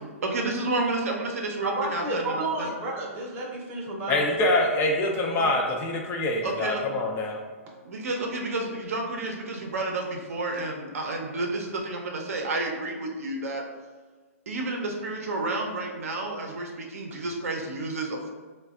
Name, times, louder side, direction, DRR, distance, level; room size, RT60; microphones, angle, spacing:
voice 1, 0.2-2.7 5.4-5.5 6.4-6.8 7.8-13.6 14.5-18.3, right 2 dB, 75° right, 1 dB, 0.6 m, -30 dB
voice 2, 1.6-4.3, right 2 dB, 25° right, -2 dB, 0.7 m, -31 dB
voice 3, 4.1-7.4, left 2 dB, 25° left, 1 dB, 0.4 m, -25 dB
3.9 x 2.2 x 2.3 m, 1.4 s
hypercardioid pair, 135°, 8 cm